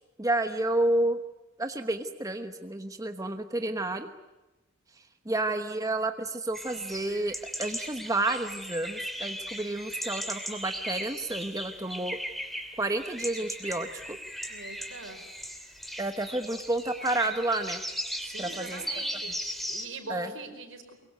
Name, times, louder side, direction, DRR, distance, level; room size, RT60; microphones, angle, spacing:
voice 1, 0.2-1.2 1.6-4.1 5.2-12.2 12.8-14.2 16.0-17.8 18.4-18.8 20.1-20.3, right 2 dB, 15° right, 7 dB, 1.1 m, -30 dB
sound 1, 6.5-19.9, equal, ahead, 2.9 m, -37 dB
voice 2, 14.5-15.2 18.2-19.4 19.7-21.0, right 3 dB, 75° right, 7 dB, 4.8 m, -42 dB
23.5 x 23.5 x 9.3 m, 1.1 s
head